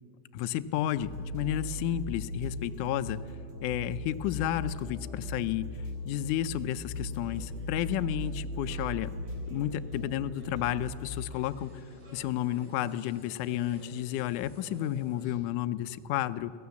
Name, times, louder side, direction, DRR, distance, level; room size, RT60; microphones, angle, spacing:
voice 1, 0.3-3.2 3.6-5.7 6.1-9.1 9.5-11.7 12.1-16.5, left 12 dB, 85° left, 11 dB, 1.8 m, -31 dB
sound 1, 1.0-11.1, left 1 dB, 50° right, 4.4 m, -38 dB
sound 2, 7.2-15.4, equal, 75° right, 6.1 m, -53 dB
sound 3, 10.6-15.5, equal, ahead, 6.8 m, -66 dB
23.5 x 16.0 x 7.1 m, 2.4 s
omnidirectional pair, 4.3 m